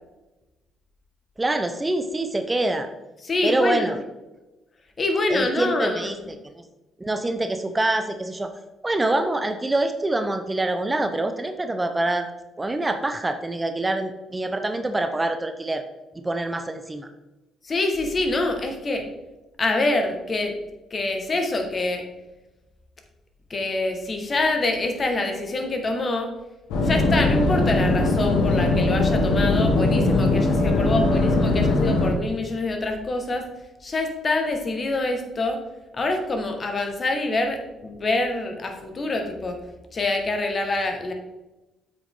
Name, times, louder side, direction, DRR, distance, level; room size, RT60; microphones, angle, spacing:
voice 1, 1.4-2.9 3.4-4.0 5.3-6.5 7.0-8.5 8.8-15.8 16.1-17.1, right 2 dB, 20° right, 8 dB, 0.8 m, -25 dB
voice 2, 3.2-4.0 5.0-6.2 17.6-19.1 19.6-20.6 20.9-22.1 23.5-26.3 26.8-33.5 33.8-35.6 35.9-39.6 39.9-41.1, left 2 dB, 40° left, 4 dB, 1.7 m, -25 dB
sound 1, 26.7-32.1, left 2 dB, 75° left, 1.4 m, -20 dB
8.1 x 6.4 x 3.8 m, 1.0 s
hypercardioid pair, 50°, 0 cm